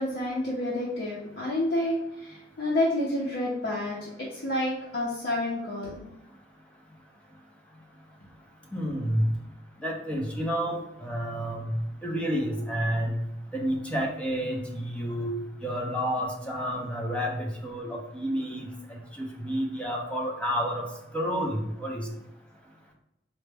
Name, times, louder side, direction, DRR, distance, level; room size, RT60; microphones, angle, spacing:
voice 1, 0.0-6.0, left 1 dB, 80° left, -6 dB, 0.7 m, -29 dB
voice 2, 8.7-9.3 9.8-11.8 12.0-13.1 13.5-15.3 15.6-20.8 21.1-22.1, equal, 5° left, 0 dB, 0.5 m, -30 dB
4.0 x 2.2 x 3.3 m, 0.92 s
head